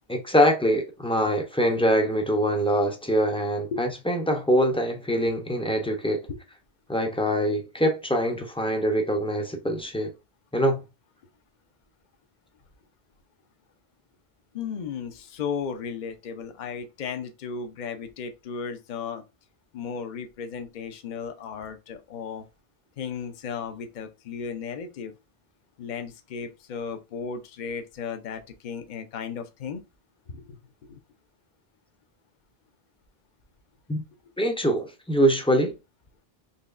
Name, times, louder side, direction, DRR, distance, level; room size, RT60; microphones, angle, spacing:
voice 1, 0.1-6.3 6.9-10.1 10.5-10.8 33.9-34.0 34.4-35.7, equal, 5° left, 0.5 m, -24 dB
voice 2, 14.5-19.2 19.7-22.4 23.0-25.1 25.8-29.8 30.3-30.5 30.8-31.0, left 6 dB, 55° left, 0.7 m, -35 dB
4.2 x 3.0 x 2.4 m
omnidirectional pair, 1.0 m